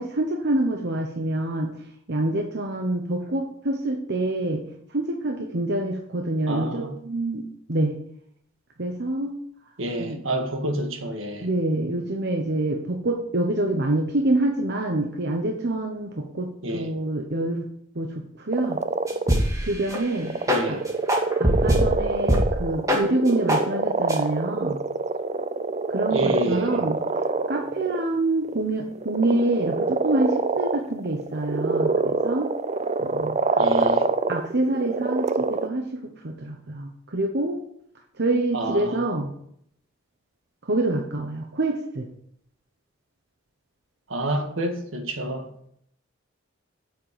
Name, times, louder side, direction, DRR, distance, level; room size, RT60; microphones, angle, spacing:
voice 1, 0.0-1.7 2.1-4.6 4.9-7.9 8.8-9.4 10.0-10.2 11.4-17.7 17.9-18.8 19.6-20.3 20.7-20.8 21.4-24.8 25.9-27.0 27.5-32.5 33.0-33.9 34.3-37.6 38.2-39.3 40.6-42.1, right 2 dB, 55° right, 1.0 m, -26 dB
voice 2, 6.5-7.0 9.8-11.5 16.6-16.9 20.5-20.8 26.1-26.8 33.6-34.2 38.5-39.0 44.1-45.7, right 1 dB, 75° right, 1.8 m, -29 dB
sound 1, 18.5-19.4 20.2-28.1 28.4-28.6 28.9-35.7, right 3 dB, 35° right, 0.5 m, -25 dB
sound 2, 19.1-19.6 19.9-20.0 20.4-20.6 21.1-21.9 22.3-22.5 22.8-23.0 23.5-23.6 24.1-24.2, equal, 15° right, 2.0 m, -20 dB
8.9 x 6.7 x 6.8 m
head